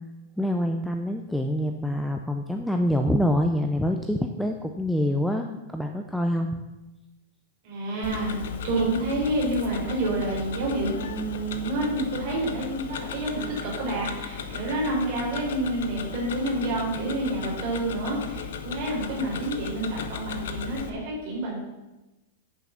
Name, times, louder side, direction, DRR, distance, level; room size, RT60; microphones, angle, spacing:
voice 1, 0.4-6.5, equal, ahead, 4 dB, 0.4 m, -26 dB
voice 2, 7.6-21.6, right 1 dB, 35° right, -3 dB, 3.6 m, -28 dB
Tick-tock, 8.0-20.9, left 6 dB, 70° left, 0.9 m, -36 dB
8.5 x 7.3 x 5.7 m, 1.0 s
supercardioid pair, 180°, 0 cm